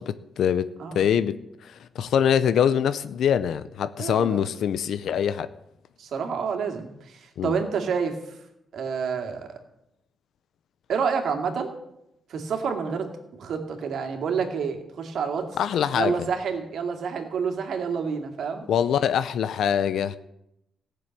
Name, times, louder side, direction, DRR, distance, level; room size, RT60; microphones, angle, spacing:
voice 1, 0.0-0.7 0.9-5.5 7.4-7.5 15.6-16.1 18.7-20.2, left 8 dB, 75° left, 0.6 m, -24 dB
voice 2, 4.0-4.4 6.0-8.2 8.7-9.6 10.9-11.7 12.3-13.1 13.4-15.5 15.9-18.6, right 6 dB, 65° right, 2.3 m, -28 dB
15.5 x 7.0 x 9.1 m
cardioid pair, 120°, 0 cm